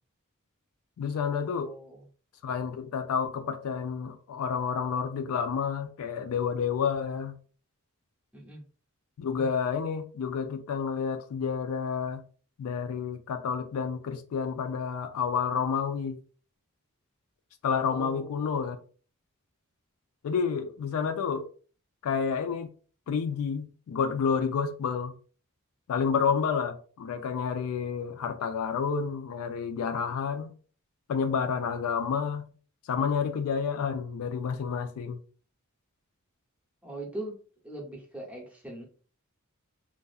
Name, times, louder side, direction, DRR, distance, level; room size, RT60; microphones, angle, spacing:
voice 1, 1.0-1.7 2.4-7.3 9.2-12.2 12.6-16.2 17.6-18.8 20.2-21.5 22.0-22.7 23.1-25.1 25.9-30.5 31.1-32.5 32.9-35.2, left 6 dB, 75° left, 0.3 m, -29 dB
voice 2, 1.6-2.0 8.3-8.6 17.9-18.6 36.8-37.4 37.6-38.8, right 1 dB, 5° right, 0.6 m, -40 dB
2.6 x 2.3 x 2.3 m
head